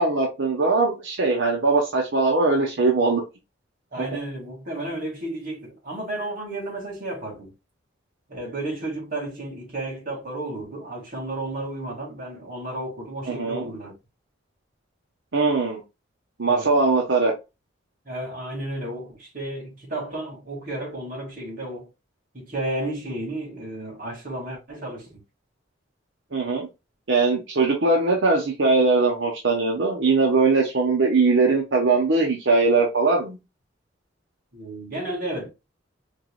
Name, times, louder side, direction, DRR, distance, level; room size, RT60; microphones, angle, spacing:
voice 1, 0.0-3.2 13.3-13.7 15.3-15.8 16.4-17.3 26.3-26.7 27.1-33.4, right 3 dB, 75° right, 0.9 m, -21 dB
voice 2, 3.9-7.5 8.3-13.9 16.4-16.7 18.1-21.9 22.3-25.2 34.5-35.5, right 1 dB, 45° right, 2.0 m, -32 dB
4.6 x 3.1 x 2.2 m
head